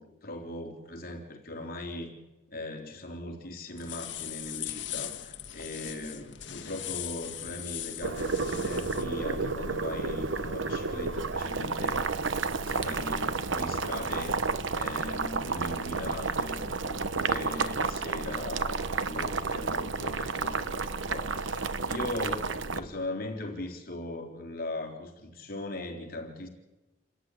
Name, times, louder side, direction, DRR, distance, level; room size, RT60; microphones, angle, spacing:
voice 1, 0.0-2.1 2.5-12.0 12.6-14.3 14.7-26.5, left 2 dB, 50° left, 2 dB, 3.7 m, -39 dB
sound 1, 3.8-9.0, left 11 dB, 75° left, 1.5 m, -39 dB
Boiling, 8.0-22.8, right 4 dB, 90° right, 1.2 m, -31 dB
29.0 x 14.0 x 9.8 m, 1.1 s
head